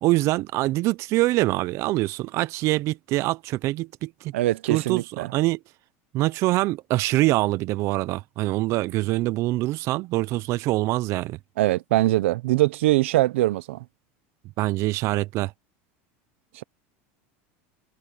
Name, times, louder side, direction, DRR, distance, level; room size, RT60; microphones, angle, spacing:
voice 1, 0.0-4.3 4.7-5.6 6.1-11.4 14.6-15.5, right 18 dB, 45° right, 0.5 m, -24 dB
voice 2, 4.3-5.3 11.6-13.8, right 17 dB, 85° right, 0.7 m, -22 dB
supercardioid pair, 135°, 7 cm